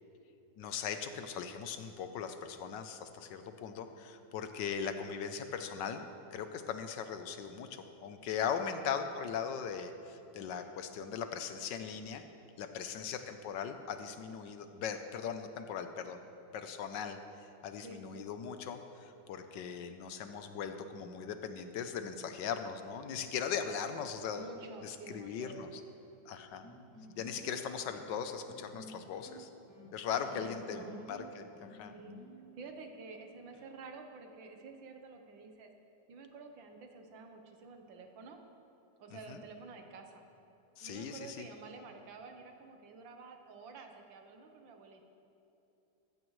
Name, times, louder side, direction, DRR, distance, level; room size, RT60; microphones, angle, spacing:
voice 1, 0.6-6.1 6.3-12.2 12.6-16.2 16.5-17.2 17.6-24.4 24.8-25.8 26.3-26.6 27.2-29.5 29.9-31.9 39.3-39.4 40.8-41.5, left 7 dB, 75° left, 8 dB, 1.4 m, -39 dB
voice 2, 8.6-9.0 12.7-13.0 17.8-18.0 24.3-25.7 30.1-31.2 31.9-32.2 32.5-35.7 36.1-38.4 39.0-40.2 40.8-45.1, right 4 dB, 90° right, 4 dB, 1.8 m, -50 dB
sound 1, 26.6-33.6, equal, 10° left, 2.4 m, -53 dB
14.5 x 14.0 x 3.2 m, 2.9 s
omnidirectional pair, 2.0 m